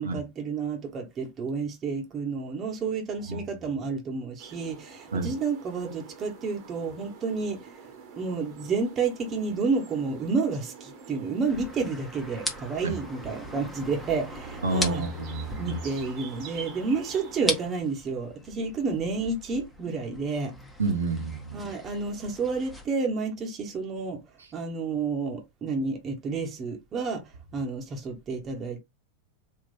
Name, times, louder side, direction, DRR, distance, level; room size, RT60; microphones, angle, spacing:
voice 1, 0.0-7.9 8.2-15.0 15.6-20.5 21.5-24.2 24.5-27.2 27.5-28.8, right 4 dB, 25° right, 1.0 m, -30 dB
sound 1, 4.4-17.7, right 5 dB, 40° right, 1.1 m, -46 dB
sound 2, 11.5-22.9, left 1 dB, 5° left, 1.0 m, -39 dB
voice 2, 14.6-15.8 20.8-21.6, right 3 dB, 70° right, 0.9 m, -29 dB
3.7 x 2.4 x 4.2 m
figure-of-eight pair, 90°, 0 cm